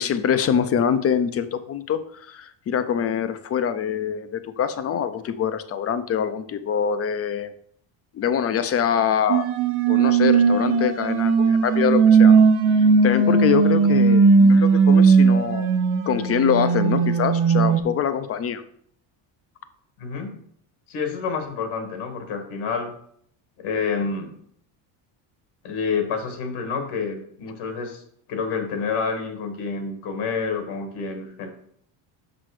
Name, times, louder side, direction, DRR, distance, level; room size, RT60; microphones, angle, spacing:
voice 1, 0.0-7.5 8.1-9.4 9.9-12.4 12.7-15.7 16.1-18.6, left 8 dB, 30° left, 11 dB, 0.4 m, -24 dB
sound 1, 9.3-17.8, right 5 dB, 65° right, 1.0 m, -17 dB
voice 2, 20.0-20.4 20.9-22.9 23.6-24.4 25.6-28.0 28.3-31.5, left 5 dB, 75° left, 5 dB, 1.7 m, -28 dB
6.1 x 5.6 x 4.7 m, 0.66 s
cardioid pair, 145°, 49 cm